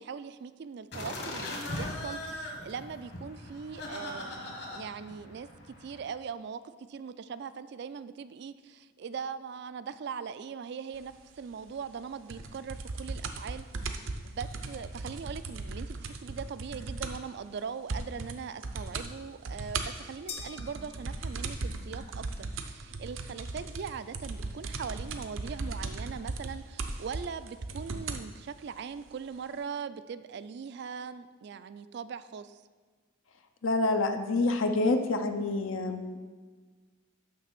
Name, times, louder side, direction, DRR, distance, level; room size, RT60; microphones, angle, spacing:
voice 1, 0.0-6.6 6.9-32.6, right 6 dB, 55° right, 14 dB, 0.3 m, -41 dB
sound 1, 0.9-6.1, left 1 dB, 55° left, 1.4 m, -39 dB
sound 2, 12.3-17.3 17.6-17.7 17.9-18.4 18.6-19.1 19.4-28.3 29.1-29.2, right 3 dB, 75° right, 0.7 m, -37 dB
sound 3, 20.3-21.7, left 5 dB, 30° left, 0.5 m, -45 dB
voice 2, 33.6-36.2, left 2 dB, 75° left, 6 dB, 0.6 m, -27 dB
6.6 x 6.2 x 5.9 m, 1.4 s
head